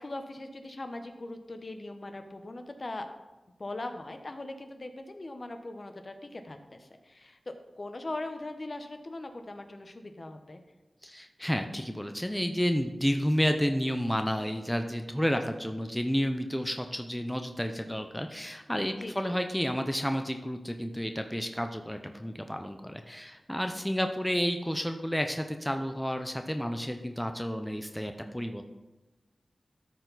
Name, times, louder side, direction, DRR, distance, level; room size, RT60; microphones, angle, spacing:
voice 1, 0.0-3.1 3.6-10.6 19.0-19.4, left 2 dB, 45° left, 6 dB, 0.9 m, -40 dB
voice 2, 11.0-28.6, equal, 5° left, 6 dB, 0.7 m, -31 dB
13.0 x 4.4 x 4.0 m, 1.1 s
cardioid pair, 55°, 0 cm